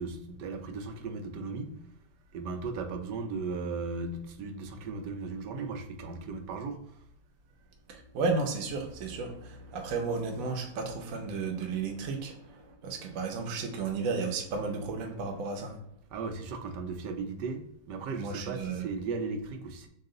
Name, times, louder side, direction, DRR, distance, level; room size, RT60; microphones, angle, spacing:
voice 1, 0.0-1.8 2.3-6.8 16.1-19.9, right 4 dB, 85° right, 1.3 m, -36 dB
voice 2, 7.9-15.8 18.2-18.9, right 4 dB, 65° right, 1.0 m, -33 dB
5.4 x 2.4 x 3.7 m
omnidirectional pair, 1.8 m